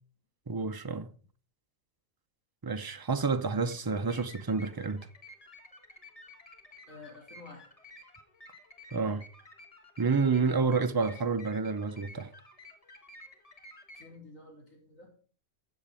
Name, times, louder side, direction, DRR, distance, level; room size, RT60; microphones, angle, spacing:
voice 1, 0.5-1.1 2.6-5.1 8.9-9.2 10.0-12.3, right 4 dB, 30° right, 0.4 m, -29 dB
sound 1, 3.6-14.2, left 1 dB, 25° left, 1.6 m, -53 dB
voice 2, 6.9-7.7 13.9-15.1, left 3 dB, 75° left, 3.7 m, -50 dB
14.0 x 7.4 x 4.9 m
omnidirectional pair, 1.4 m